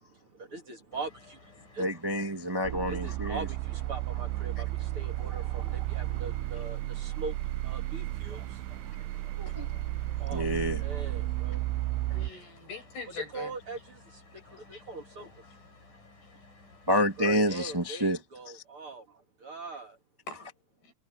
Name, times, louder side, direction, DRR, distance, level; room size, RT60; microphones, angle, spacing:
voice 1, 0.0-1.8 2.9-9.5 10.0-12.1 13.3-15.3 17.2-20.0, right 3 dB, 40° right, 2.7 m, -42 dB
sound 1, 0.9-17.9, left 3 dB, 55° left, 8.9 m, -56 dB
voice 2, 1.8-3.5 9.4-9.7 10.3-10.8 16.9-18.2 18.5-18.6, equal, 15° right, 0.9 m, -28 dB
sound 2, 2.6-12.3, right 17 dB, 85° right, 2.5 m, -33 dB
voice 3, 12.1-13.5 14.7-14.8 15.2-15.3 20.3-20.5 20.8-20.9, left 4 dB, 85° left, 10.0 m, -43 dB
omnidirectional pair, 4.5 m